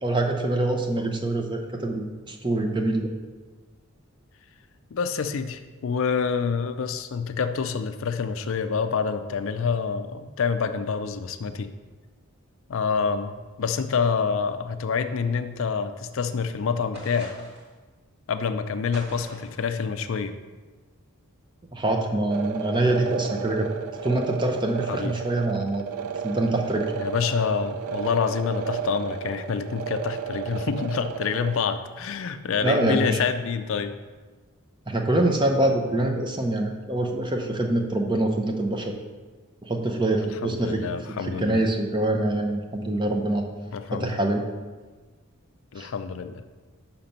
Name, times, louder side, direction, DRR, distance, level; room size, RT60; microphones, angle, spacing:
voice 1, 0.0-3.1 21.7-23.7 24.0-26.9 32.6-33.2 34.9-38.9 39.6-40.8 41.2-43.4 43.9-44.4 45.8-45.9, right 1 dB, 20° right, 3 dB, 0.6 m, -25 dB
voice 2, 4.9-11.7 12.7-17.3 18.3-20.3 24.9-25.1 27.0-33.9 40.4-41.6 43.7-44.2 45.7-46.4, left 6 dB, 60° left, 9 dB, 0.4 m, -27 dB
sound 1, 16.9-17.7 18.9-19.6, equal, 45° right, 1.7 m, -43 dB
sound 2, 22.3-31.6, right 8 dB, 80° right, 0.4 m, -33 dB
5.8 x 5.8 x 5.2 m, 1.3 s
head